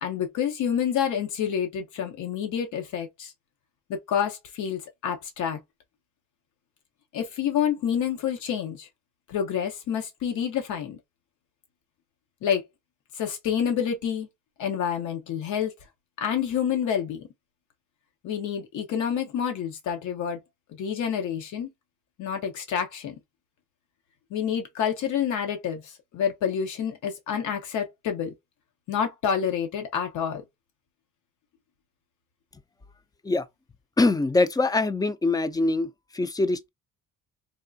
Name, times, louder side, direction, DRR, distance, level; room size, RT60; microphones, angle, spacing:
voice 1, 0.0-3.3 4.1-5.6 7.1-8.9 9.3-11.0 12.4-12.6 13.2-14.3 14.6-15.7 16.2-17.3 18.2-20.4 20.8-21.7 22.2-23.2 24.3-28.3 28.9-30.4, left 8 dB, 80° left, 0.8 m, -28 dB
voice 2, 34.0-36.7, left 2 dB, 15° left, 0.3 m, -23 dB
3.6 x 2.4 x 2.5 m
cardioid pair, 90°, 30 cm